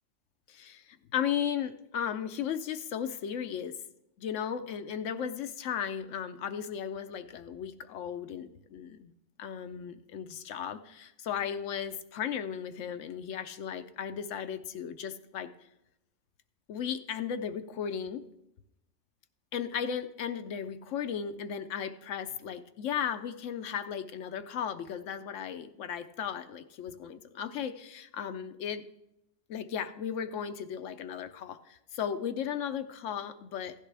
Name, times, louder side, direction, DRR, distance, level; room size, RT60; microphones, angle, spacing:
voice 1, 0.5-3.8 4.2-9.1 9.4-15.5 16.7-18.2 19.5-28.8 29.5-33.7, left 8 dB, 85° left, 10 dB, 1.0 m, -35 dB
15.5 x 10.5 x 3.4 m, 0.89 s
omnidirectional pair, 1.2 m